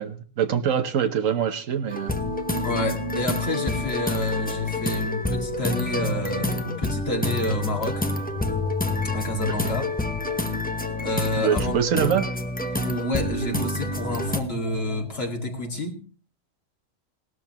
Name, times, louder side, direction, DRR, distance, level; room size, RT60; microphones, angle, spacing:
voice 1, 0.0-2.2 9.5-9.8 11.4-12.3, right 8 dB, 85° right, 10 dB, 1.4 m, -24 dB
sound 1, 1.9-14.4, left 2 dB, 10° left, 0.8 m, -28 dB
sound 2, 2.0-15.8, right 1 dB, 30° right, 1.5 m, -36 dB
voice 2, 2.6-8.0 9.1-9.9 11.0-12.0 12.8-16.0, left 2 dB, 50° left, 1 dB, 2.3 m, -28 dB
18.0 x 12.5 x 3.0 m, 0.41 s
omnidirectional pair, 1.3 m